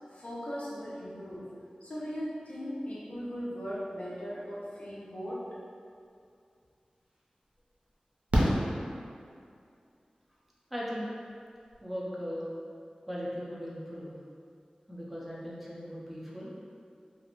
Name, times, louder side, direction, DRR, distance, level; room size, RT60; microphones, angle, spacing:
voice 1, 0.1-1.5 1.8-5.6, equal, 60° left, -7 dB, 0.6 m, -38 dB
Fireworks, 6.6-6.7 8.3-9.6 11.4-11.5 11.7-11.8, equal, 70° right, 0.5 m, -28 dB
voice 2, 10.7-11.1 11.8-12.5 13.1-14.2 14.9-16.5, equal, 5° right, -6 dB, 0.6 m, -38 dB
2.4 x 2.0 x 2.9 m, 2.4 s
cardioid pair, 40°, 2 cm